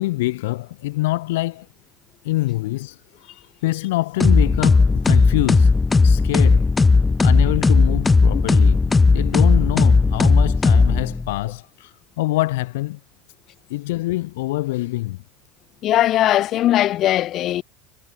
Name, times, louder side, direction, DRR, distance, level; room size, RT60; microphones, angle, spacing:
voice 1, 0.0-1.7 2.2-5.7 6.0-6.7 7.2-13.0 13.7-15.2, left 19 dB, 80° left, 1.3 m, -25 dB
sound 1, 4.2-11.4, left 4 dB, 15° left, 1.2 m, -16 dB
voice 2, 15.8-17.6, left 13 dB, 45° left, 3.3 m, -19 dB
supercardioid pair, 115°, 0 cm